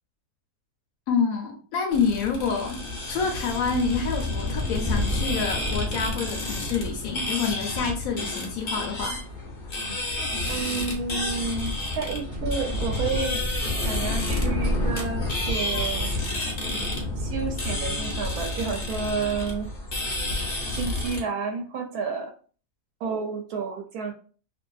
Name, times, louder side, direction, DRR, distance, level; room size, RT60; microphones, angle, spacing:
voice 1, 1.1-2.8 3.1-9.2, left 5 dB, 70° left, 2 dB, 0.9 m, -27 dB
sound 1, 1.9-21.2, left 1 dB, 45° left, 0.6 m, -29 dB
voice 2, 10.5-13.4 13.7-16.5 17.2-19.7 20.7-22.3 23.0-24.1, right 5 dB, 75° right, 4 dB, 1.0 m, -31 dB
2.6 x 2.5 x 2.3 m, 0.40 s
omnidirectional pair, 1.7 m